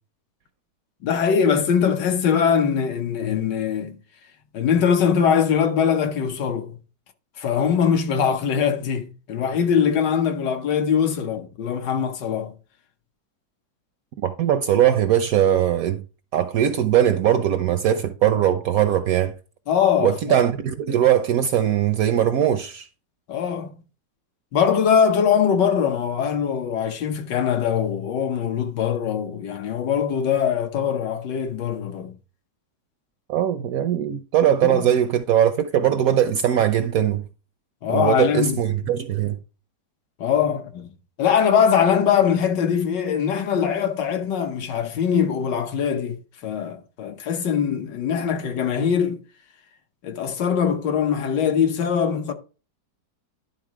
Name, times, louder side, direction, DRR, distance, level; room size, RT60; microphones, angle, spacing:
voice 1, 1.0-4.0 4.5-6.8 7.4-12.5 19.7-20.4 23.3-23.7 24.5-32.1 34.6-34.8 37.8-38.8 40.2-40.9 41.2-49.2 50.0-52.3, left 7 dB, 75° left, 1.6 m, -22 dB
voice 2, 14.2-16.0 16.3-19.3 20.0-22.9 33.3-37.2 37.9-39.4, right 10 dB, 70° right, 0.8 m, -20 dB
11.0 x 3.8 x 4.7 m
omnidirectional pair, 1.9 m